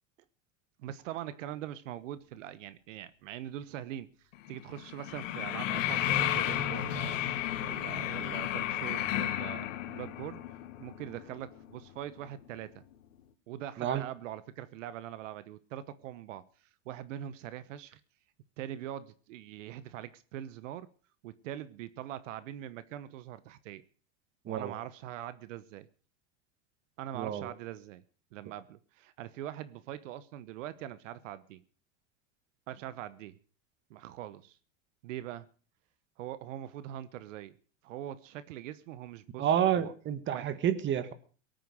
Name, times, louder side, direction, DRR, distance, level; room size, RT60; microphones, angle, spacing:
voice 1, 0.8-7.2 7.6-10.4 10.8-12.7 13.5-16.4 16.8-18.0 18.6-20.9 21.2-23.8 24.4-25.9 27.0-28.0 28.3-31.6 32.7-33.4 33.9-34.6 35.0-35.5 36.2-37.5 37.8-39.5 39.7-39.9 40.3-40.6, right 12 dB, 75° right, 1.1 m, -42 dB
sound 1, 4.3-12.7 12.9-13.0, left 11 dB, 85° left, 1.8 m, -33 dB
voice 2, 27.1-27.5 39.4-41.1, right 10 dB, 30° right, 1.6 m, -29 dB
18.5 x 9.3 x 6.3 m
supercardioid pair, 135°, 37 cm